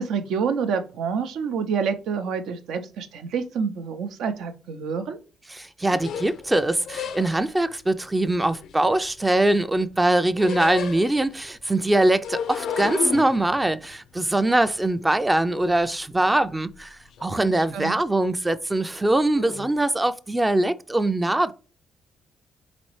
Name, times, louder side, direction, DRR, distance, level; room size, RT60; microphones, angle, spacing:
voice 1, 0.0-5.2 17.3-18.0, right 6 dB, 80° right, 0.6 m, -28 dB
voice 2, 5.6-21.5, right 1 dB, 15° right, 0.4 m, -22 dB
sound 1, 5.9-7.6 8.3-9.6 9.9-11.4 12.1-15.8 16.2-16.9 17.1-17.7 18.0-18.3 19.3-19.8, left 7 dB, 75° left, 0.4 m, -34 dB
4.1 x 3.9 x 3.1 m
cardioid pair, 90°, 0 cm